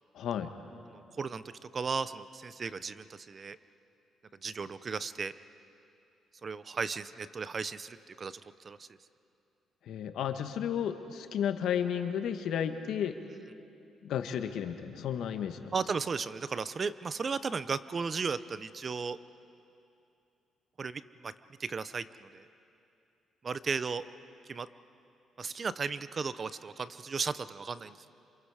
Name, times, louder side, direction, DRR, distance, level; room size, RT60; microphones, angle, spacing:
voice 1, 0.1-0.5 9.9-13.2 14.0-15.7, left 8 dB, 75° left, 7 dB, 1.4 m, -33 dB
voice 2, 0.9-1.4 1.7-3.6 4.4-5.3 6.4-8.9 13.3-13.4 15.7-19.2 20.8-21.3 21.6-22.5 23.4-24.0 24.5-24.7 25.4-28.1, right 5 dB, 40° right, 15 dB, 0.7 m, -35 dB
27.5 x 27.0 x 5.0 m, 2.7 s
cardioid pair, 90°, 0 cm